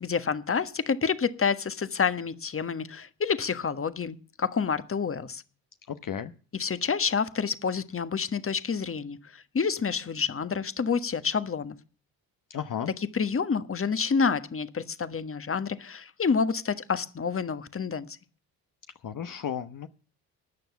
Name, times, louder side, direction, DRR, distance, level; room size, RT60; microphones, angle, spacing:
voice 1, 0.0-5.4 6.5-11.8 13.0-18.1, left 5 dB, 30° left, 13 dB, 1.5 m, -28 dB
voice 2, 5.9-6.3 12.5-12.9 19.0-19.9, left 8 dB, 45° left, 9 dB, 1.2 m, -33 dB
13.5 x 9.2 x 7.1 m, 0.39 s
hypercardioid pair, 50°, 45 cm